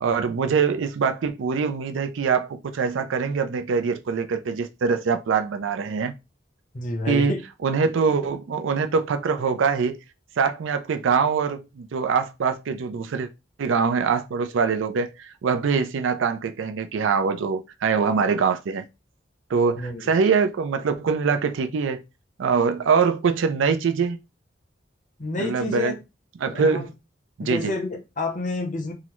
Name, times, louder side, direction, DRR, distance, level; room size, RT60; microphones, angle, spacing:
voice 1, 0.0-6.1 7.1-7.3 7.6-10.0 10.4-13.3 13.6-18.8 19.5-22.0 22.4-24.2 25.4-25.9 26.4-26.9 27.4-27.7, right 5 dB, 85° right, 0.4 m, -23 dB
voice 2, 6.7-7.4 19.8-20.0 25.2-25.9 26.5-26.9 27.4-28.9, left 2 dB, 40° left, 0.7 m, -29 dB
3.6 x 2.0 x 3.0 m
head